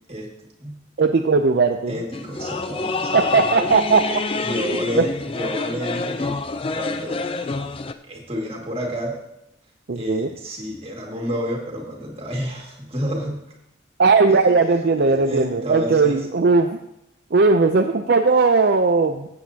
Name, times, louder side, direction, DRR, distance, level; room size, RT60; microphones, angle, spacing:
voice 1, 1.0-1.9 3.1-4.0 5.0-5.1 9.9-10.3 14.0-16.8 17.3-19.3, right 4 dB, 50° right, 5 dB, 0.5 m, -18 dB
voice 2, 1.9-3.7 4.4-6.4 6.7-7.2 8.0-9.2 9.9-13.4 14.3-14.5 15.1-16.3, equal, 30° right, -1 dB, 2.0 m, -30 dB
sound 1, 2.1-7.9, left 3 dB, 25° left, 0.4 m, -27 dB
15.5 x 8.0 x 2.8 m, 0.84 s
head